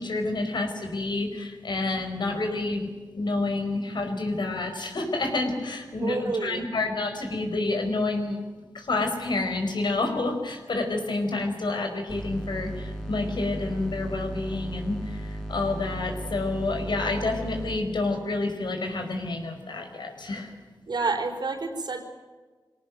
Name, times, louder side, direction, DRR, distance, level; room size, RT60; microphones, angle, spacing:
voice 1, 0.0-8.4 8.7-20.5, left 2 dB, 70° left, 5 dB, 5.0 m, -29 dB
voice 2, 6.0-6.6 20.9-22.0, right 3 dB, 65° right, 4 dB, 4.4 m, -29 dB
sound 1, 12.1-17.8, right 1 dB, 5° left, 4.2 m, -36 dB
23.0 x 18.0 x 9.3 m, 1.4 s
cardioid pair, 65°, 8 cm